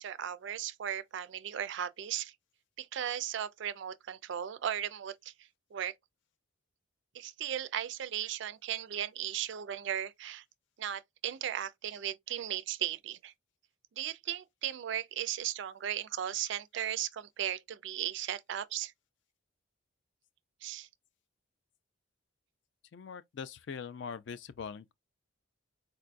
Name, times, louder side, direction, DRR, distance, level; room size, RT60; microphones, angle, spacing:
voice 1, 0.0-2.3 2.8-5.9 7.1-10.4 10.8-13.3 14.0-18.9 20.6-20.9, right 10 dB, 55° right, 0.3 m, -36 dB
voice 2, 22.9-24.9, left 6 dB, 55° left, 0.3 m, -42 dB
4.4 x 2.2 x 2.4 m
head